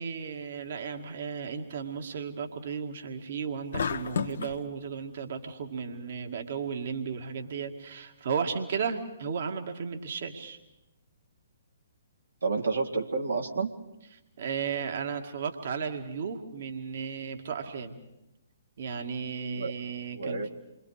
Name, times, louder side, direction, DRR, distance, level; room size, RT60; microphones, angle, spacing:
voice 1, 0.0-10.6 14.4-18.0 18.8-20.4, right 6 dB, 50° right, 4 dB, 2.1 m, -34 dB
sound 1, 3.7-4.6, left 6 dB, 60° left, 1.2 m, -31 dB
voice 2, 12.4-13.7 19.5-19.7 20.1-20.5, right 4 dB, 70° right, 1 dB, 2.1 m, -29 dB
29.0 x 24.5 x 5.0 m, 0.92 s
figure-of-eight pair, 125°, 0 cm